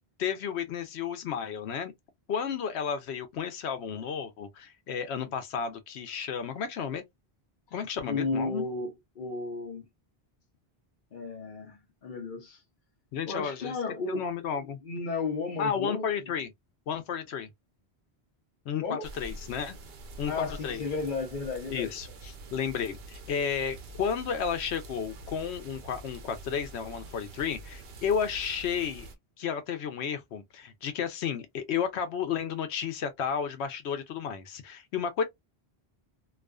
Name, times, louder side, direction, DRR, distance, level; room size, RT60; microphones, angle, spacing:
voice 1, 0.2-1.9 2.3-7.0 7.7-8.7 13.1-13.7 14.1-14.8 15.6-16.5 16.9-17.5 18.7-19.8 20.2-20.8 21.7-29.1 29.4-35.2, left 7 dB, 85° left, 0.9 m, -32 dB
voice 2, 8.1-9.8 11.1-12.6 13.3-14.2 14.8-16.1 18.8-19.0 20.3-21.9, left 4 dB, 55° left, 0.8 m, -33 dB
sound 1, 19.0-29.2, right 2 dB, 70° right, 0.9 m, -46 dB
2.4 x 2.3 x 2.2 m
omnidirectional pair, 1.1 m